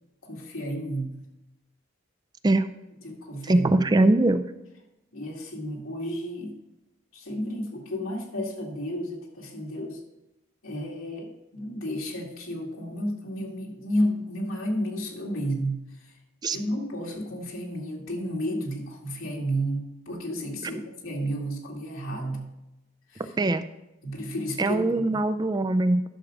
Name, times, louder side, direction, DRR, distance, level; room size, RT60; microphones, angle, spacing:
voice 1, 0.2-1.2 3.0-4.1 5.1-6.5 7.1-10.0 10.6-16.1 16.5-22.5 23.1-23.3 24.0-24.8 25.1-25.2, equal, 85° left, -1 dB, 2.3 m, -32 dB
voice 2, 3.4-4.5 16.4-16.6 20.6-20.7 23.4-23.6 24.6-26.0, right 2 dB, 20° right, 11 dB, 0.3 m, -22 dB
11.5 x 6.4 x 4.9 m, 0.95 s
head